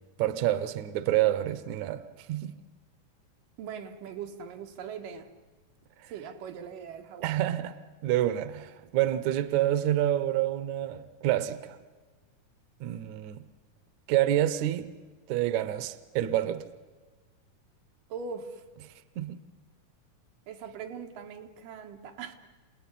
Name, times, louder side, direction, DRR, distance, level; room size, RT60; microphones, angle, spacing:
voice 1, 0.2-2.0 2.3-2.6 7.2-7.8 8.0-11.8 12.8-13.4 14.1-14.9 15.3-16.6 19.2-19.4, right 13 dB, 70° right, 2.1 m, -28 dB
voice 2, 3.6-5.3 6.1-7.4 18.1-18.6 20.5-22.3, right 6 dB, 90° right, 3.2 m, -40 dB
27.5 x 18.5 x 10.0 m
omnidirectional pair, 3.8 m